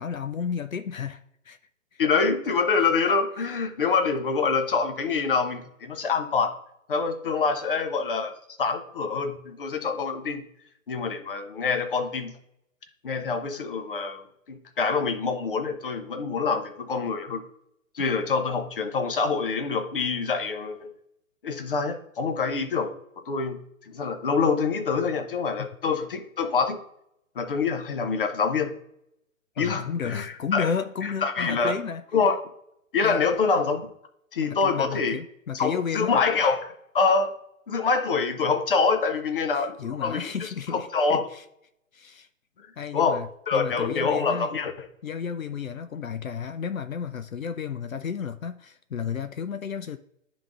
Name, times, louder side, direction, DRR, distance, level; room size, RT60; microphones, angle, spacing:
voice 1, 0.0-1.6 1.9-2.0 2.8-2.9 25.6-25.7 29.6-32.0 33.0-33.2 34.4-36.2 39.5-41.4 41.9-42.3 42.8-44.5 45.0-50.0, left 7 dB, 80° left, 0.5 m, -32 dB
voice 2, 2.0-6.5 6.9-8.3 8.6-10.4 10.9-12.3 13.0-17.4 17.9-20.9 21.4-22.9 23.3-26.8 27.4-28.8 29.6-30.7 31.0-31.8 32.1-32.4 32.9-33.8 34.3-35.2 35.5-37.3 37.7-40.2 40.7-41.3 42.9-44.9, left 5 dB, 40° left, 0.8 m, -26 dB
11.5 x 3.9 x 2.4 m
figure-of-eight pair, 135°, 40 cm